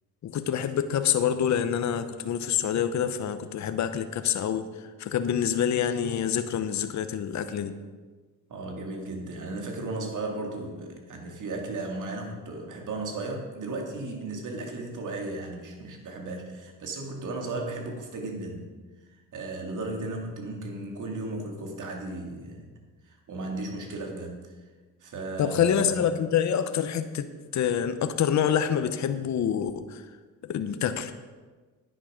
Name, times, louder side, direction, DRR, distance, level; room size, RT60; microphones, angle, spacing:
voice 1, 0.2-7.8 25.4-30.1 30.4-31.1, left 8 dB, 50° left, 10 dB, 0.8 m, -27 dB
voice 2, 8.5-18.7 19.3-22.7 23.0-24.5 25.0-26.1, right 2 dB, 55° right, 2 dB, 2.5 m, -35 dB
10.5 x 8.9 x 5.1 m, 1.4 s
cardioid pair, 85°, 36 cm